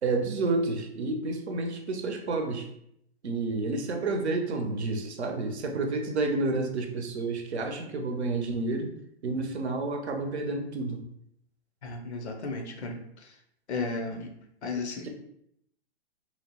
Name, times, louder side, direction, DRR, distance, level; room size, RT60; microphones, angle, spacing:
voice 1, 0.0-2.7 3.2-8.9 9.2-11.0, right 3 dB, 80° right, 3 dB, 0.7 m, -30 dB
voice 2, 11.8-13.3 13.7-14.3 14.6-15.1, left 3 dB, 80° left, 4 dB, 0.6 m, -34 dB
2.8 x 2.0 x 2.9 m, 0.74 s
hypercardioid pair, 125°, 33 cm